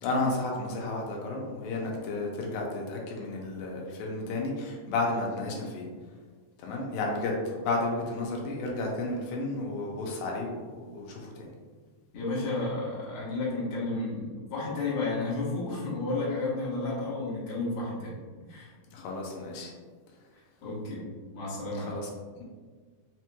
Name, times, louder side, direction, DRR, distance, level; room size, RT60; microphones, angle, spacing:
voice 1, 0.0-5.8 6.6-11.5 18.9-19.7 21.8-22.1, left 2 dB, 85° left, -1 dB, 2.3 m, -32 dB
voice 2, 12.1-18.2 18.5-18.7 20.6-21.0 21.3-21.9, left 2 dB, 55° left, -7 dB, 1.7 m, -32 dB
5.6 x 3.0 x 2.2 m, 1.5 s
omnidirectional pair, 3.9 m